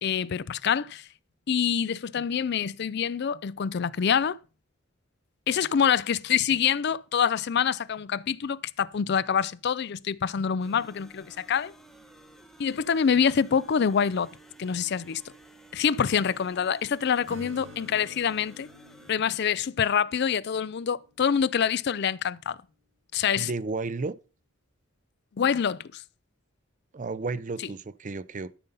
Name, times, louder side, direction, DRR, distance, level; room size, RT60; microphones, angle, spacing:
voice 1, 0.0-1.0 1.5-4.4 5.5-11.7 12.6-14.3 14.6-15.2 15.7-18.7 19.1-22.6 23.1-23.5 25.4-26.0, left 7 dB, 55° left, 0.4 m, -26 dB
sound 1, 10.6-19.1, right 2 dB, ahead, 1.0 m, -53 dB
Acoustic guitar / Strum, 17.3-21.2, left 1 dB, 90° right, 1.8 m, -49 dB
voice 2, 23.4-24.1 26.9-28.5, right 3 dB, 40° right, 0.5 m, -32 dB
12.5 x 5.4 x 5.5 m
head